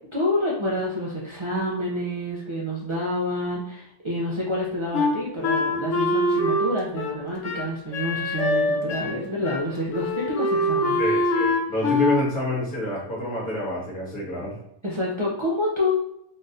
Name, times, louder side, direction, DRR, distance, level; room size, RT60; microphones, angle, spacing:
voice 1, 0.1-11.0 14.8-15.9, left 1 dB, 45° right, -5 dB, 0.4 m, -28 dB
Wind instrument woodwind instrument, 4.9-9.2 9.4-9.6 9.9-12.2, left 1 dB, 85° left, 1.1 m, -24 dB
voice 2, 11.0-14.5, left 1 dB, 50° left, -5 dB, 1.4 m, -28 dB
3.7 x 2.4 x 2.6 m, 0.77 s
omnidirectional pair, 1.3 m